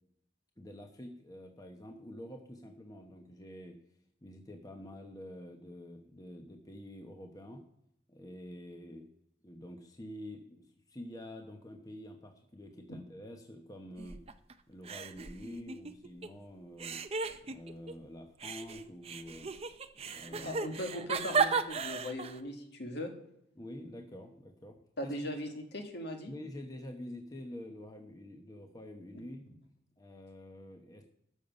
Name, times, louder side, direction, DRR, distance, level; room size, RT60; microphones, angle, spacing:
voice 1, 0.6-3.8 4.2-7.6 8.1-9.1 9.4-14.2 14.7-17.0 17.4-19.5 20.0-20.6 23.6-25.3 26.3-29.5 30.0-31.1, left 1 dB, 20° left, 3 dB, 1.0 m, -47 dB
sound 1, 14.0-14.5 14.8-16.3 16.8-17.9 18.4-22.4, right 5 dB, 30° right, 0.6 m, -35 dB
voice 2, 20.4-23.1 25.0-26.3, left 1 dB, 60° left, 4 dB, 1.9 m, -39 dB
13.0 x 7.1 x 5.3 m, 0.78 s
head